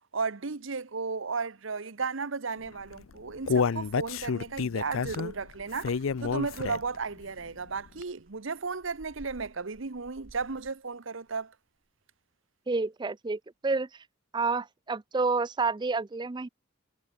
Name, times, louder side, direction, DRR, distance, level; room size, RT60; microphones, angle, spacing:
voice 1, 0.0-5.9 6.2-11.5, right 4 dB, 70° right, 1.0 m, -34 dB
Human voice, 2.9-7.0 7.4-7.5 8.0-8.1, left 5 dB, 80° left, 0.5 m, -29 dB
sound 1, 4.1-5.3 5.9-11.4 11.8-12.0, right 4 dB, 45° right, 1.0 m, -53 dB
voice 2, 12.7-14.0 14.3-16.5, right 4 dB, 20° right, 0.4 m, -29 dB
head